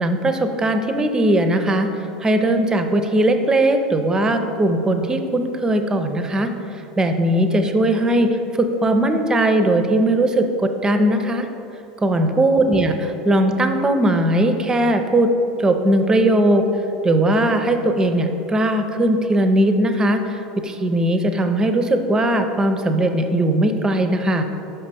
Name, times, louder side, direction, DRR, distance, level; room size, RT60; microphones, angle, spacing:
voice 1, 0.0-1.9 2.2-6.5 7.0-11.5 12.0-15.3 15.6-16.6 17.0-24.4, right 1 dB, 15° right, 7 dB, 0.6 m, -19 dB
5.4 x 5.2 x 4.2 m, 2.9 s
hypercardioid pair, 85°, 4 cm